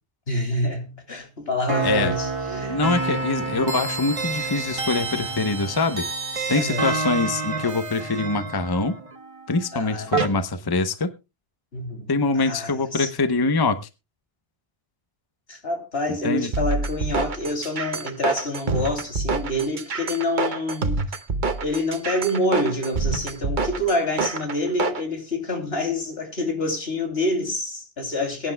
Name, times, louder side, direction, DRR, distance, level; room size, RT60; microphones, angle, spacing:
voice 1, 0.3-3.2 6.4-6.9 9.7-10.1 11.7-13.1 15.5-21.0 21.6-28.5, left 1 dB, 75° left, 3.2 m, -27 dB
sound 1, 1.7-10.3, right 3 dB, 35° right, 1.2 m, -28 dB
voice 2, 1.8-2.1 2.7-6.1 6.5-9.0 9.5-11.1 12.1-13.8 16.1-16.5, left 3 dB, 25° left, 0.8 m, -24 dB
sound 2, 16.5-25.0, right 3 dB, 50° right, 1.1 m, -26 dB
22.0 x 10.0 x 2.2 m
omnidirectional pair, 1.0 m